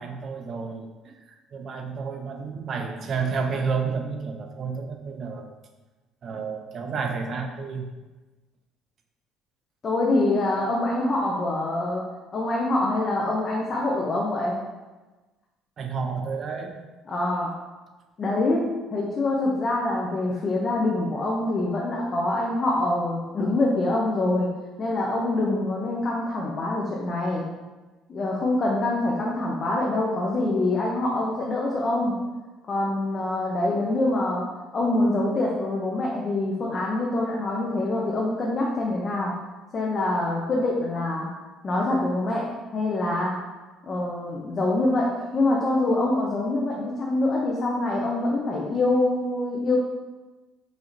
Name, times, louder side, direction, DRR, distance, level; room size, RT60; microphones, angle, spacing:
voice 1, 0.0-5.4 6.2-7.9 15.8-16.8, right 5 dB, 45° right, 4 dB, 0.5 m, -31 dB
voice 2, 9.8-12.1 12.3-14.6 17.1-17.5 18.2-18.6 18.9-24.5 24.8-27.4 28.1-32.1 32.7-34.5 34.7-39.3 39.7-41.3 41.6-43.4 43.8-49.8, left 2 dB, 35° left, -3 dB, 0.6 m, -25 dB
5.0 x 2.8 x 2.6 m, 1.2 s
cardioid pair, 105°, 0 cm